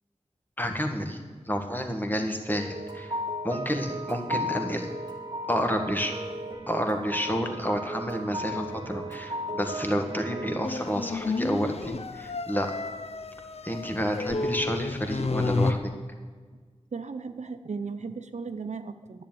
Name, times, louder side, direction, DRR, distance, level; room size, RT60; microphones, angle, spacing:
voice 1, 0.6-1.2 1.4-4.9 5.5-6.1 6.7-12.7 13.6-15.9, equal, 15° left, 4 dB, 1.6 m, -30 dB
sound 1, 2.5-10.6, equal, 35° right, 1.5 m, -35 dB
sound 2, 10.6-15.7, left 3 dB, 60° left, 0.6 m, -31 dB
voice 2, 16.9-19.3, right 4 dB, 75° right, 9 dB, 0.6 m, -36 dB
10.5 x 7.3 x 9.0 m, 1.5 s
wide cardioid pair, 50°, 12 cm